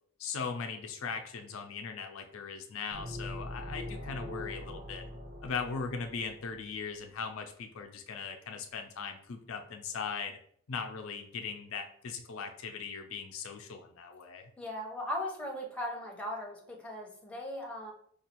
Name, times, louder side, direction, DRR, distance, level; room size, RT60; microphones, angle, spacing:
voice 1, 0.2-5.0 5.4-10.4 10.7-14.5, left 5 dB, 85° left, 5 dB, 0.5 m, -39 dB
sound 1, 2.9-6.6, left 1 dB, 50° right, 1.0 m, -42 dB
voice 2, 14.6-17.9, left 1 dB, 5° left, -1 dB, 0.7 m, -38 dB
5.2 x 2.4 x 2.9 m, 0.62 s
head